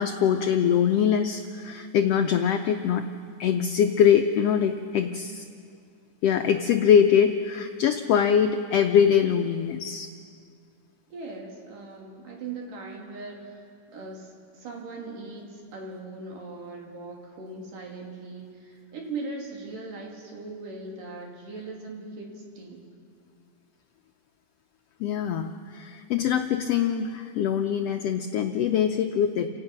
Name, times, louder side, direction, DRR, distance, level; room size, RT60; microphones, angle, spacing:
voice 1, 0.0-3.0 3.4-5.4 6.2-10.1 25.0-29.5, left 8 dB, 90° left, 5 dB, 1.3 m, -23 dB
voice 2, 11.1-13.6 13.9-22.9, right 3 dB, 85° right, 0 dB, 4.3 m, -39 dB
29.5 x 17.0 x 6.0 m, 2.2 s
omnidirectional pair, 3.7 m